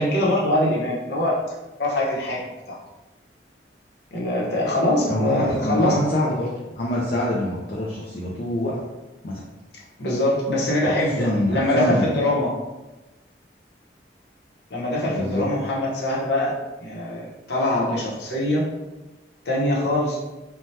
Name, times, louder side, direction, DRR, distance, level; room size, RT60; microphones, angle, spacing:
voice 1, 0.0-1.4 1.8-2.4 2.7-2.8 4.1-6.0 10.0-12.5 14.7-18.6 19.4-20.2, left 1 dB, 70° left, -4 dB, 0.8 m, -23 dB
voice 2, 5.1-6.5 6.8-8.9 9.2-9.4 10.9-12.1 15.1-15.5, left 1 dB, 50° left, -4 dB, 0.4 m, -25 dB
2.7 x 2.2 x 3.2 m, 1.1 s
head